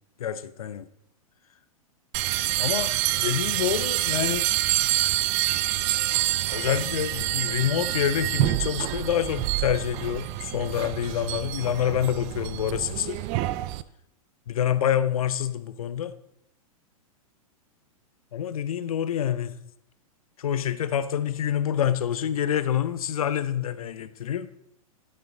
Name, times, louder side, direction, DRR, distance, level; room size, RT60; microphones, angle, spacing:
voice 1, 0.2-0.9 2.6-4.4 6.5-13.2 14.5-16.1 18.3-19.6 20.4-24.5, left 9 dB, 75° left, 0.6 m, -27 dB
sound 1, 2.1-13.8, right 16 dB, 35° right, 0.4 m, -27 dB
10.5 x 5.7 x 3.9 m
hypercardioid pair, 115°, 19 cm